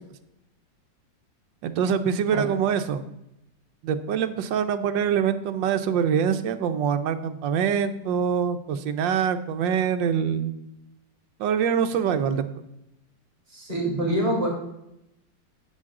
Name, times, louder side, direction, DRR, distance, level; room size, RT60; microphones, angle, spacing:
voice 1, 1.6-3.1 3.8-10.5 11.4-12.5, right 7 dB, 80° right, 9 dB, 1.4 m, -24 dB
voice 2, 13.5-14.5, right 1 dB, 30° right, -2 dB, 4.1 m, -25 dB
10.5 x 7.6 x 3.7 m, 0.86 s
omnidirectional pair, 2.0 m